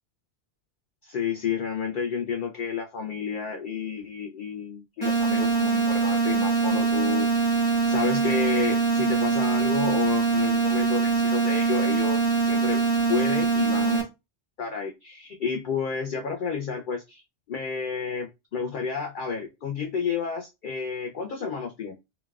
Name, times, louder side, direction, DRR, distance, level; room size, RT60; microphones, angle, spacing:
voice 1, 1.0-12.8 13.1-14.1 14.6-17.2 17.5-21.9, left 5 dB, 60° left, 2 dB, 0.6 m, -31 dB
sound 1, 5.0-14.0, right 4 dB, 25° left, 1.2 m, -23 dB
4.0 x 2.2 x 2.3 m, 0.24 s
omnidirectional pair, 1.2 m